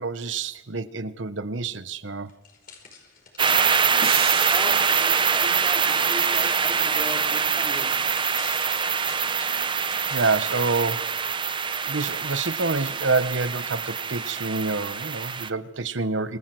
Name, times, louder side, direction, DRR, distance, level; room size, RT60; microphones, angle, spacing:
voice 1, 0.0-2.3 10.1-11.1 11.8-16.4, right 3 dB, 70° right, 1.2 m, -27 dB
sound 1, 2.3-10.3 10.9-11.0, left 6 dB, 45° left, 5.5 m, -47 dB
sound 2, 3.4-15.5, right 6 dB, 25° right, 0.8 m, -24 dB
sound 3, 4.0-6.3, right 8 dB, 50° right, 2.4 m, -35 dB
voice 2, 4.5-7.9, left 1 dB, 15° left, 4.2 m, -37 dB
27.5 x 24.5 x 7.9 m
head